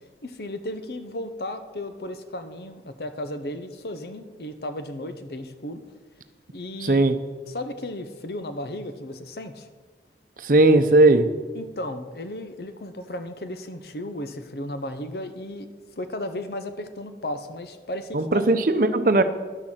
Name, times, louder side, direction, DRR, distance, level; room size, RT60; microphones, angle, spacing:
voice 1, 0.2-5.8 6.5-7.0 7.5-9.7 11.5-15.7 16.0-18.6, left 1 dB, 60° left, 9 dB, 0.8 m, -34 dB
voice 2, 6.8-7.2 10.4-11.3 18.1-19.2, right 2 dB, 50° right, 10 dB, 0.7 m, -17 dB
11.0 x 6.5 x 7.4 m, 1.4 s
head